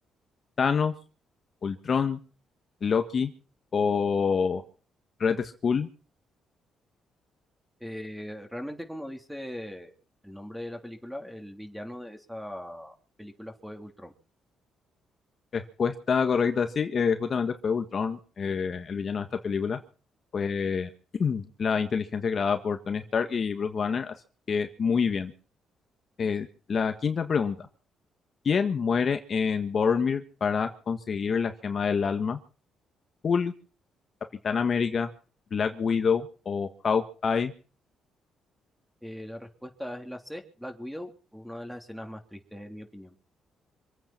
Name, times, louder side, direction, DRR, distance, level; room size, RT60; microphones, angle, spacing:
voice 1, 0.6-0.9 1.6-2.2 2.8-3.3 3.7-4.6 5.2-5.9 15.5-19.8 20.3-20.9 21.2-24.1 24.5-25.3 26.2-27.7 28.4-32.4 33.2-33.5 34.4-35.1 35.5-37.5, left 6 dB, 45° left, 7 dB, 1.5 m, -27 dB
voice 2, 7.8-9.9 10.2-14.1 39.0-43.1, equal, ahead, 5 dB, 3.4 m, -40 dB
26.0 x 9.0 x 6.0 m, 0.40 s
cardioid pair, 90°, 0 cm